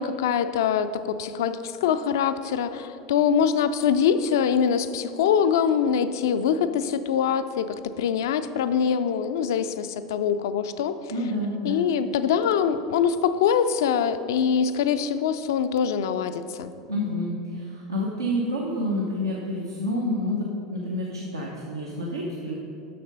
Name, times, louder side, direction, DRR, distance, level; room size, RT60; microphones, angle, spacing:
voice 1, 0.0-11.0 11.6-16.7, left 7 dB, 65° left, 11 dB, 0.4 m, -24 dB
voice 2, 11.1-11.8 16.9-22.5, left 1 dB, 85° right, -4 dB, 0.8 m, -28 dB
6.7 x 6.5 x 5.4 m, 2.8 s
figure-of-eight pair, 85°, 2 cm